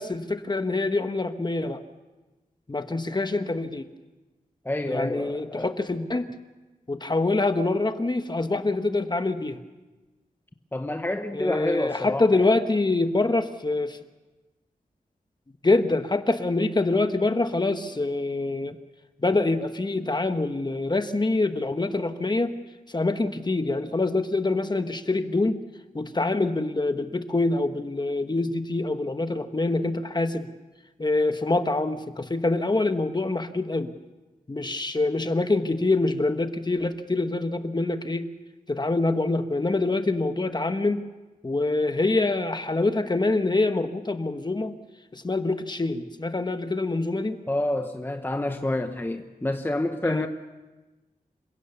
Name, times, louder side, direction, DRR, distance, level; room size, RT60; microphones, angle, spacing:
voice 1, 0.0-1.8 2.7-3.9 4.9-6.3 6.9-9.6 11.3-14.0 15.6-18.7 19.2-22.5 22.9-25.6 25.9-30.5 31.0-33.9 34.5-38.2 38.7-41.0 41.4-44.8 45.1-47.4 50.0-50.3, left 2 dB, 30° left, 8 dB, 1.2 m, -25 dB
voice 2, 4.6-5.7 10.7-12.5 47.5-50.3, left 1 dB, 15° left, 6 dB, 1.0 m, -28 dB
27.0 x 16.5 x 7.1 m, 1.2 s
wide cardioid pair, 110°, 15 cm